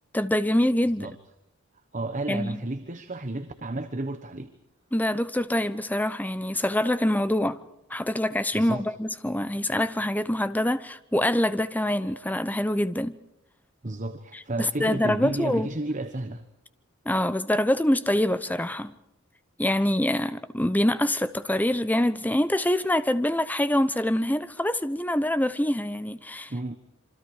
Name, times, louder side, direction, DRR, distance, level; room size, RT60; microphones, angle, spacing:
voice 1, 0.1-1.1 2.3-2.6 4.9-7.6 7.9-13.1 14.6-15.7 17.1-18.9 19.6-26.5, left 1 dB, 10° left, 0.8 m, -25 dB
voice 2, 1.9-4.5 8.5-8.8 13.8-16.4 26.5-26.7, right 2 dB, 35° right, 1.2 m, -32 dB
27.0 x 25.0 x 4.9 m
head